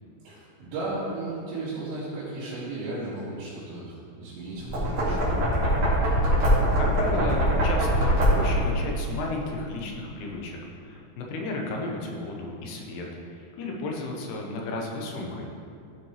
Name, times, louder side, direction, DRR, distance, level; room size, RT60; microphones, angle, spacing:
voice 1, 0.2-5.4, right 2 dB, 90° right, -12 dB, 4.0 m, -35 dB
Knock, 4.6-8.7, equal, 45° right, 2.8 m, -22 dB
voice 2, 6.8-13.1 13.3-15.5, left 2 dB, 80° left, 0 dB, 3.0 m, -33 dB
14.5 x 5.9 x 3.2 m, 2.5 s
omnidirectional pair, 4.8 m